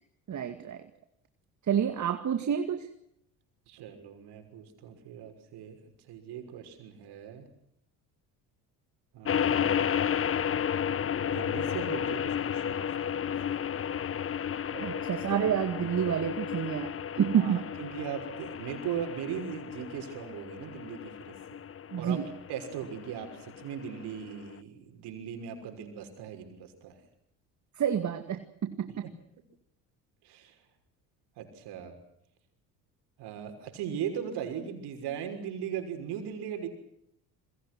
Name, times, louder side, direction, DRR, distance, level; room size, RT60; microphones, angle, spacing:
voice 1, 0.3-0.8 1.7-2.9 14.8-17.6 21.9-22.3 27.8-29.0, right 8 dB, 45° right, 8 dB, 2.2 m, -29 dB
voice 2, 3.7-7.5 9.1-9.9 11.2-13.6 14.7-15.3 17.3-21.6 22.0-22.2 22.5-27.0 29.0-29.1 30.2-30.6 31.4-32.0 33.2-36.7, right 8 dB, 70° right, 6 dB, 6.2 m, -39 dB
sound 1, 9.2-24.5, left 8 dB, 30° left, 0.9 m, -33 dB
28.5 x 22.5 x 6.3 m, 0.75 s
supercardioid pair, 75°, 42 cm